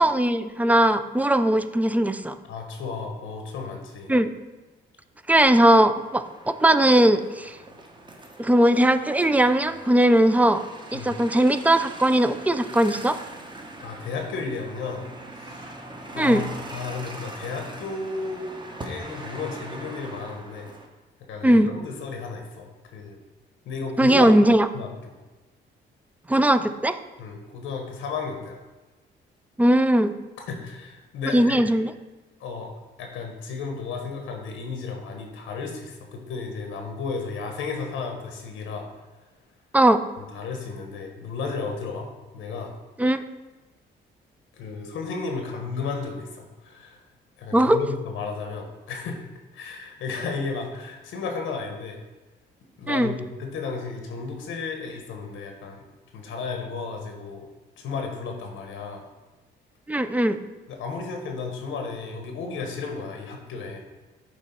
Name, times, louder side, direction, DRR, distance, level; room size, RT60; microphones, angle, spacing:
voice 1, 0.0-2.4 4.1-4.3 5.3-7.6 8.4-10.6 10.9-13.2 16.2-16.4 21.4-21.7 24.0-24.7 26.3-27.0 29.6-30.1 31.3-31.9 39.7-40.0 43.0-43.2 47.5-47.8 52.9-53.1 59.9-60.4, right 1 dB, 10° right, 11 dB, 0.3 m, -19 dB
voice 2, 2.5-4.1 10.9-11.2 13.8-15.1 15.3-15.7 16.1-18.5 18.8-20.7 21.3-23.2 23.6-24.3 24.7-25.1 27.2-28.6 30.5-31.6 32.4-32.7 33.0-38.9 40.2-42.7 44.6-47.0 47.4-49.2 49.5-52.0 52.8-55.8 56.1-57.5 57.8-59.1 60.7-63.8, left 4 dB, 85° left, 3 dB, 0.9 m, -33 dB
sound 1, 6.0-20.9, right 2 dB, 25° right, 0.8 m, -42 dB
7.8 x 3.1 x 4.3 m, 1.2 s
cardioid pair, 90°, 20 cm